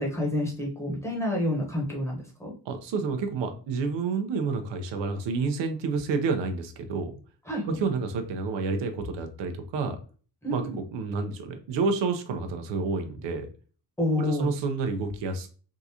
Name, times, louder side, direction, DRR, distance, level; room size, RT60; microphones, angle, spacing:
voice 1, 0.0-2.5 7.5-7.8 10.4-10.8 14.0-14.5, left 1 dB, 5° left, -3 dB, 0.9 m, -29 dB
voice 2, 2.7-7.1 7.7-10.0 10.5-13.5 14.1-15.5, right 4 dB, 85° right, 6 dB, 0.7 m, -29 dB
3.7 x 2.4 x 2.8 m, 0.39 s
cardioid pair, 145°, 42 cm